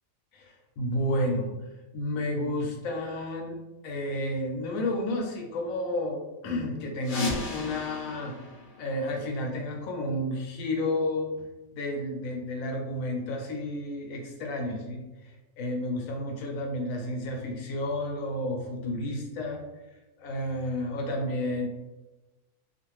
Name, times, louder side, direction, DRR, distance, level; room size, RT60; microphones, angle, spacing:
voice 1, 0.3-1.5 1.9-3.6 3.8-8.4 8.8-11.3 11.7-19.6 20.2-21.7, left 1 dB, 85° left, 1 dB, 1.0 m, -31 dB
sound 1, 7.0-9.6, left 4 dB, 55° left, 0.6 m, -35 dB
2.5 x 2.4 x 3.0 m, 1.1 s
omnidirectional pair, 1.4 m